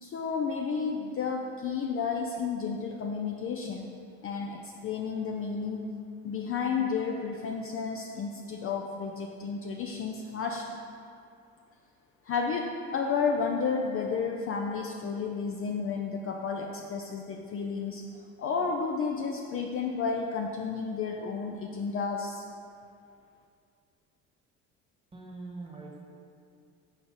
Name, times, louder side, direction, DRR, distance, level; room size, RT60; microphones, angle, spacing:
voice 1, 0.0-3.9 4.2-5.9 6.2-10.7 12.2-18.0 18.4-22.4, left 5 dB, 35° left, 1 dB, 0.4 m, -32 dB
voice 2, 25.1-26.0, right 3 dB, 15° right, -2 dB, 1.2 m, -42 dB
4.6 x 3.9 x 5.3 m, 2.4 s
hypercardioid pair, 70°, 38 cm